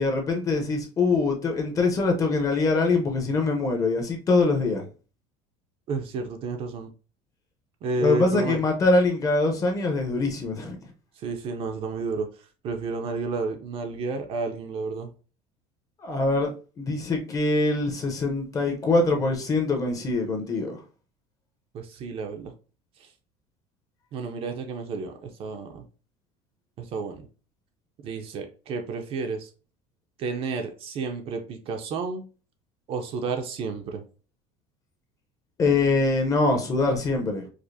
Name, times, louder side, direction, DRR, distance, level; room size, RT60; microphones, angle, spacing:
voice 1, 0.0-4.9 8.0-10.8 16.0-16.5 16.8-20.8 35.6-37.4, left 3 dB, 25° left, 0.7 m, -23 dB
voice 2, 5.9-6.9 7.8-8.7 11.2-12.3 12.6-15.1 21.7-22.5 23.0-23.1 24.1-25.9 26.8-27.3 28.0-29.5 30.2-32.2 32.9-34.0, right 4 dB, 40° right, 0.5 m, -31 dB
4.8 x 2.0 x 2.6 m
cardioid pair, 160°, 15 cm